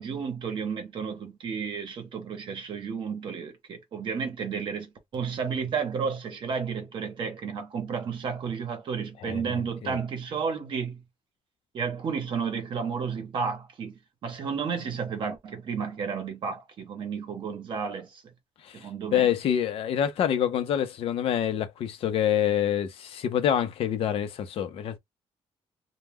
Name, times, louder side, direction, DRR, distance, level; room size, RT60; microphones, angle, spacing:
voice 1, 0.0-11.0 11.7-18.2 18.7-19.3, right 6 dB, 55° right, 0.7 m, -32 dB
voice 2, 9.2-10.0 18.6-25.0, left 9 dB, 70° left, 0.5 m, -27 dB
2.2 x 2.1 x 3.4 m
cardioid pair, 140°, 10 cm